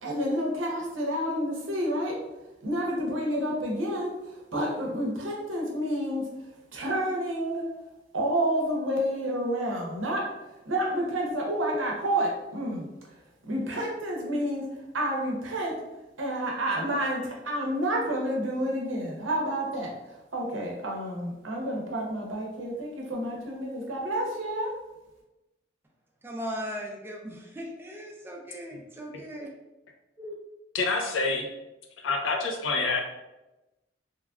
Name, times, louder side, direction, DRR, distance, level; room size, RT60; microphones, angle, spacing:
voice 1, 0.0-2.2 2.6-6.3 6.7-7.6 8.1-10.3 10.7-12.9 13.5-14.7 14.9-15.8 16.2-20.0 20.3-24.7, right 1 dB, 90° right, 0.7 m, -29 dB
voice 2, 26.2-29.5 30.2-30.3 31.0-31.1, equal, 10° right, 0.4 m, -38 dB
voice 3, 30.7-31.5 32.0-33.0, left 3 dB, 85° left, 0.5 m, -27 dB
3.1 x 2.3 x 2.3 m
head